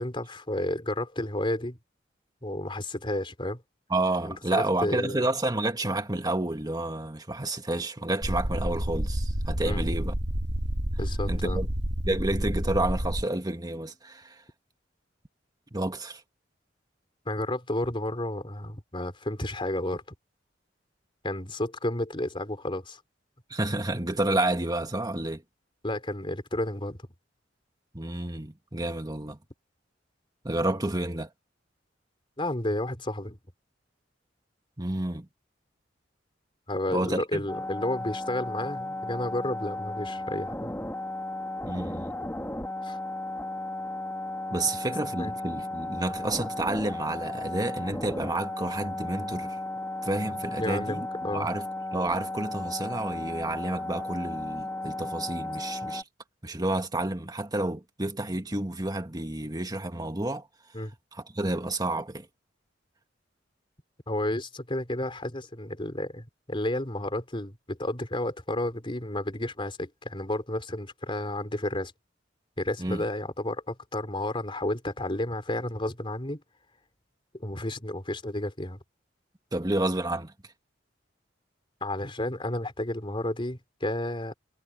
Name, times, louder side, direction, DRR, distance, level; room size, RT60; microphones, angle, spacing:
voice 1, 0.0-1.8 2.4-3.6 4.3-5.3 9.6-10.0 11.0-11.7 17.3-20.0 21.2-23.0 25.8-27.0 32.4-33.4 36.7-40.7 42.8-43.0 45.2-45.4 50.2-51.5 60.7-60.9 64.1-71.9 72.6-76.4 77.3-78.8 81.8-84.3, left 1 dB, 30° left, 4.0 m, -32 dB
voice 2, 3.9-10.1 11.2-11.7 12.0-14.4 15.7-16.2 23.5-25.4 27.9-29.4 30.4-31.3 34.8-35.2 36.9-37.5 41.6-42.1 44.5-49.6 50.0-51.6 51.9-56.0 56.4-60.5 61.1-62.3 72.8-73.0 79.5-80.3, right 2 dB, 20° right, 1.8 m, -30 dB
sound 1, 8.2-13.2, equal, 65° right, 2.8 m, -29 dB
sound 2, 37.5-56.0, left 2 dB, 10° left, 2.3 m, -35 dB
head